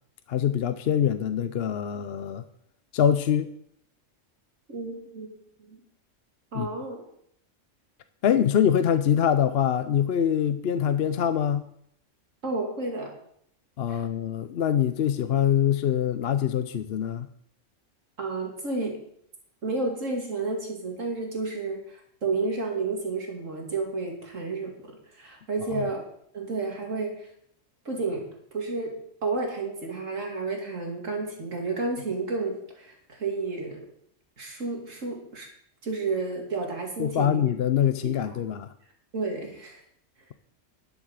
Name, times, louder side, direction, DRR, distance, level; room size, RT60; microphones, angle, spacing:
voice 1, 0.3-2.4 2.9-3.5 6.5-6.7 8.2-11.6 13.8-17.3 25.7-25.8 37.0-38.7, left 9 dB, 60° left, 11 dB, 0.8 m, -24 dB
voice 2, 4.7-5.3 5.7-5.8 6.5-7.1 12.4-13.1 13.9-14.0 18.2-19.0 19.6-24.7 25.1-26.0 26.3-27.3 27.8-28.3 28.5-33.8 34.4-35.5 35.8-37.4 38.0-38.4 39.1-39.8, right 3 dB, 75° right, 0 dB, 3.0 m, -31 dB
11.5 x 7.3 x 6.6 m, 0.69 s
omnidirectional pair, 1.3 m